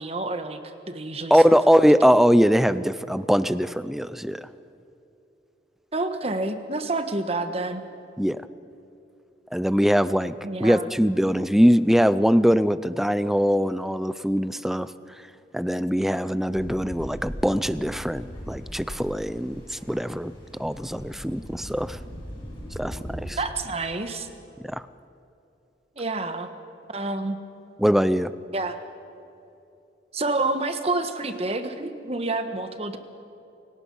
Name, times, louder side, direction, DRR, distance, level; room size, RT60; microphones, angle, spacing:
voice 1, 0.0-2.2 5.9-7.8 10.4-10.9 23.4-24.3 26.0-26.5 26.9-27.4 28.5-28.8 30.1-33.0, right 2 dB, 35° right, 9 dB, 1.4 m, -29 dB
voice 2, 1.3-4.5 8.2-8.4 9.5-10.3 10.6-14.9 15.5-20.3 20.6-22.0 22.8-23.4 24.7-24.8 27.8-28.3, equal, ahead, 15 dB, 0.5 m, -21 dB
sound 1, 16.5-23.3, equal, 30° left, 5.9 m, -39 dB
28.5 x 18.0 x 5.5 m, 2.8 s
head